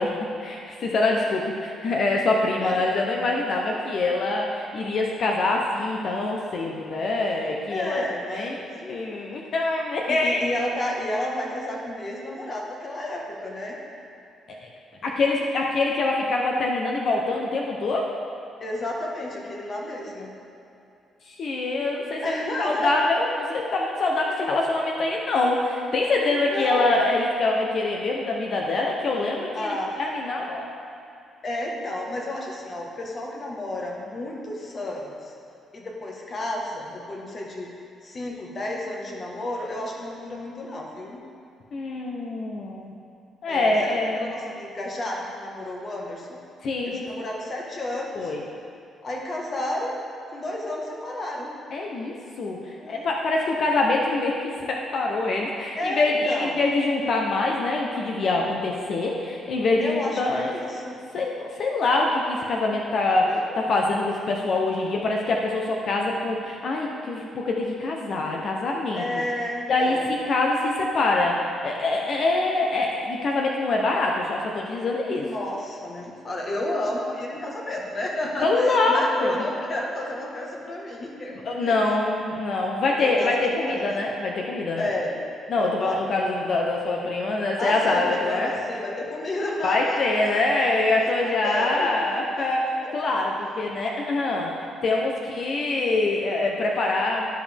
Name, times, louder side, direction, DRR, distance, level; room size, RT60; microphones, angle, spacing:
voice 1, 0.0-8.0 8.3-8.6 8.9-10.5 14.6-14.7 15.0-18.1 21.3-30.7 41.7-42.9 43.4-44.3 46.6-47.1 48.1-48.4 51.7-60.5 61.1-69.0 69.7-75.2 78.4-79.3 81.4-84.9 85.5-88.6 89.6-94.5 94.8-97.3, left 2 dB, 60° left, 0 dB, 0.8 m, -24 dB
voice 2, 7.7-9.0 10.1-13.8 18.6-20.3 22.2-22.9 26.2-26.9 29.5-30.0 31.4-35.3 35.7-37.7 38.0-41.2 43.5-46.4 46.8-48.3 49.0-51.5 52.8-53.1 55.7-56.6 59.8-61.0 63.3-63.6 68.9-70.1 75.1-81.8 83.0-83.9 84.8-85.1 85.5-86.2 87.6-90.7 91.0-93.0 93.4-93.6, left 1 dB, 40° left, -2 dB, 1.5 m, -32 dB
12.5 x 5.1 x 3.5 m, 2.7 s
cardioid pair, 90°, 0 cm